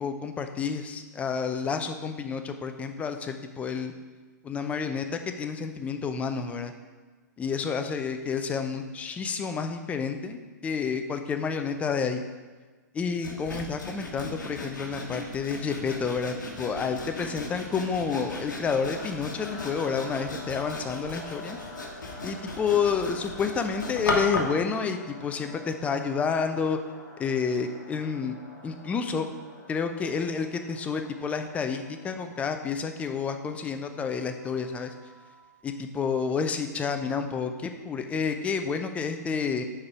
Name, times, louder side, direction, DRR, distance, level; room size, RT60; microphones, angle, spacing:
voice 1, 0.0-3.9 4.4-6.7 7.4-12.2 12.9-21.6 22.2-26.8 27.2-28.4 28.6-29.3 29.7-34.9 35.6-39.6, left 5 dB, 15° left, 7 dB, 0.4 m, -29 dB
Sawing, 13.2-24.6, left 2 dB, 75° left, 1.0 m, -36 dB
sound 1, 18.9-35.6, left 2 dB, 40° left, 1.1 m, -47 dB
4.7 x 4.4 x 4.7 m, 1.4 s
figure-of-eight pair, 115°, 10 cm